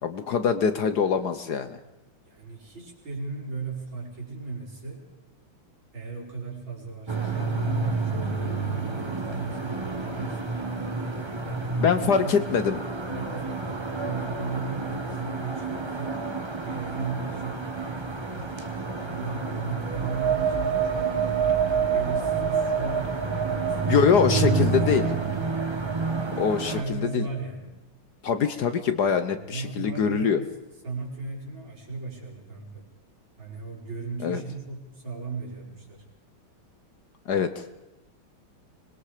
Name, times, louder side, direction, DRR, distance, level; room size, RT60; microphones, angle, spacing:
voice 1, 0.0-1.8 11.8-12.8 23.9-25.1 26.4-27.2 28.2-30.4 34.2-34.4 37.3-37.6, left 6 dB, 60° left, 10 dB, 1.3 m, -24 dB
voice 2, 2.2-5.0 5.9-10.4 11.4-12.6 13.1-16.2 16.6-17.7 18.0-18.5 19.0-21.1 21.8-23.2 23.5-25.1 26.6-27.8 29.5-30.5 30.8-32.9 33.4-36.0, right 4 dB, 70° right, -3 dB, 5.8 m, -36 dB
sound 1, 7.1-26.8, right 3 dB, 15° right, 1.1 m, -30 dB
sound 2, 19.8-27.4, right 8 dB, 50° right, 1.6 m, -28 dB
25.0 x 21.0 x 5.0 m, 1.0 s
omnidirectional pair, 2.2 m